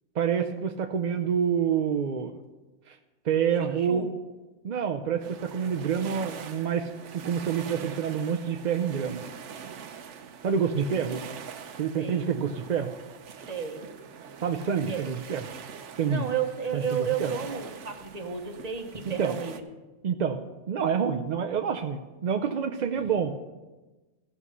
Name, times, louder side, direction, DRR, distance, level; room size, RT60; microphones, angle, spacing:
voice 1, 0.1-2.4 2.9-3.0 3.2-4.1 4.6-9.3 10.4-11.2 11.8-12.9 14.4-15.5 16.0-16.3 16.7-17.3 19.1-19.4 20.0-20.4 20.7-23.3, right 7 dB, 55° right, 4 dB, 0.5 m, -27 dB
voice 2, 3.6-4.1 11.9-12.2 13.5-13.8 14.9-15.1 16.0-19.6, right 7 dB, 35° right, 4 dB, 1.1 m, -32 dB
sound 1, 5.2-19.6, right 7 dB, 75° right, 1.0 m, -44 dB
15.5 x 6.2 x 5.4 m, 1.2 s
omnidirectional pair, 1.3 m